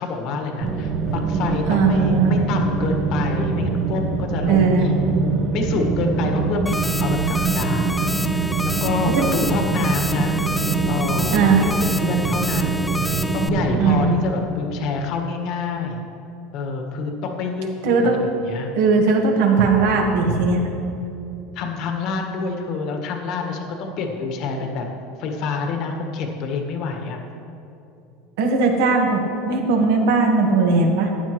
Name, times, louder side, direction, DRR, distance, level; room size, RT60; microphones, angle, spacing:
voice 1, 0.0-5.0 5.5-7.9 8.3-10.3 10.9-16.0 16.5-18.7 21.5-24.9 25.2-27.2, left 4 dB, 60° left, 3 dB, 1.6 m, -27 dB
sound 1, 0.6-14.1, right 4 dB, 50° right, 1.0 m, -23 dB
voice 2, 1.7-2.3 4.5-4.9 9.1-9.3 11.3-11.7 13.8-14.2 17.8-18.2 18.8-20.6 28.4-29.2 29.5-31.1, right 4 dB, 75° right, 2 dB, 1.6 m, -18 dB
sound 2, 6.7-13.5, left 2 dB, 5° left, 0.3 m, -29 dB
14.0 x 9.6 x 3.2 m, 2.8 s
supercardioid pair, 110°, 0 cm